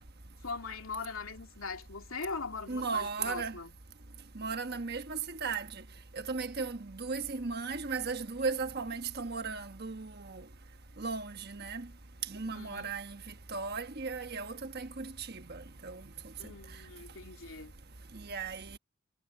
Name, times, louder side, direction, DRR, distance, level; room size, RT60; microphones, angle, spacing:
voice 1, 0.4-3.8 12.5-12.9 16.4-17.7, left 4 dB, 75° left, 2.8 m, -41 dB
voice 2, 2.7-3.5 4.3-5.7 6.1-10.4 11.0-11.9 12.3-16.0 18.1-18.8, right 4 dB, 50° right, 1.3 m, -36 dB
head